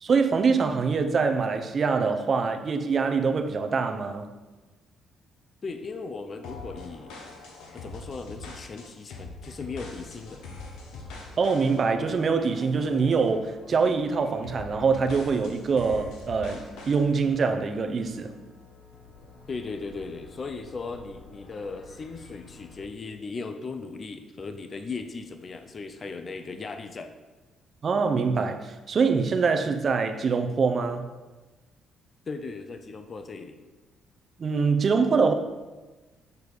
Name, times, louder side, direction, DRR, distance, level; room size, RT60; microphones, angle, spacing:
voice 1, 0.0-4.3 11.4-18.3 27.8-31.1 34.4-35.3, right 5 dB, 35° right, 0.7 m, -24 dB
voice 2, 5.6-7.2 7.7-10.4 19.5-27.1 32.3-33.6, left 4 dB, 30° left, 0.6 m, -37 dB
sound 1, 6.4-13.4 13.8-14.0 14.4-17.0, left 3 dB, 90° left, 1.4 m, -43 dB
sound 2, 9.6-22.8, left 4 dB, 70° left, 1.5 m, -51 dB
6.8 x 5.3 x 6.2 m
cardioid pair, 150°, 0 cm